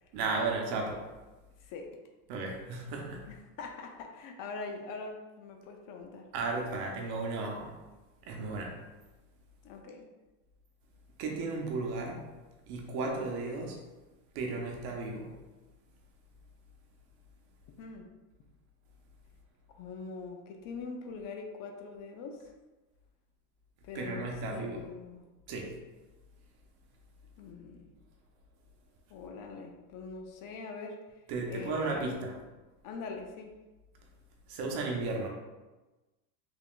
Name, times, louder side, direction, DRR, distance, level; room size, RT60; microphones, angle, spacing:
voice 1, 0.1-1.1 2.3-3.3 6.3-7.8 8.2-8.8 11.2-12.3 12.7-13.8 14.3-15.4 23.9-24.8 25.5-25.8 31.3-32.4 34.5-35.3, right 3 dB, 60° right, 1 dB, 0.9 m, -34 dB
voice 2, 1.6-2.0 3.3-6.3 9.6-10.1 17.8-18.1 19.7-22.5 23.8-25.2 27.4-27.9 29.1-31.2 31.5-32.2 32.8-33.6, left 4 dB, 50° left, 3 dB, 0.6 m, -43 dB
3.5 x 3.4 x 2.5 m, 1.1 s
supercardioid pair, 120°, 43 cm